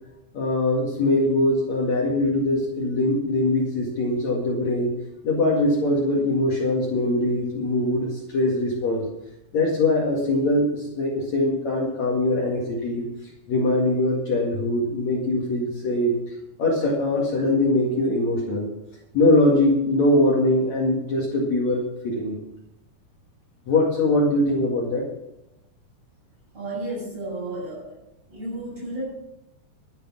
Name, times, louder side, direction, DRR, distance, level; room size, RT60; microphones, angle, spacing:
voice 1, 0.3-5.0 5.2-9.1 9.5-13.0 13.5-16.2 16.6-18.7 19.1-22.4 23.7-25.1, left 1 dB, 50° left, -2 dB, 2.9 m, -22 dB
voice 2, 26.5-28.0 28.3-29.1, right 1 dB, 40° right, -4 dB, 7.8 m, -32 dB
12.0 x 10.0 x 6.1 m, 0.84 s
omnidirectional pair, 4.5 m